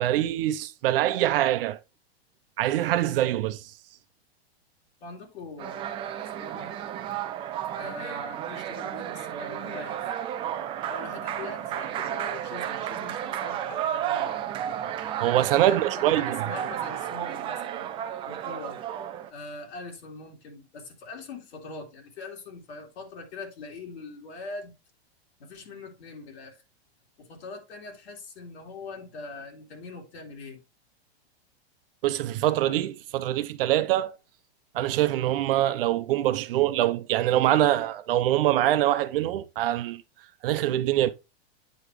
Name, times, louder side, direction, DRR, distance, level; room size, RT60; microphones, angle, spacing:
voice 1, 0.0-1.8 2.6-3.6 15.2-16.4 32.0-34.2 34.7-40.0 40.4-41.1, right 13 dB, 60° right, 0.8 m, -24 dB
voice 2, 5.0-5.9 6.4-6.7 7.8-10.1 10.9-14.3 15.5-17.9 18.2-18.8 19.3-24.8 25.4-26.6 27.2-30.6, left 3 dB, 75° left, 2.9 m, -42 dB
sound 1, 5.6-19.3, right 10 dB, 15° right, 0.4 m, -32 dB
9.0 x 5.0 x 3.1 m
hypercardioid pair, 140°, 32 cm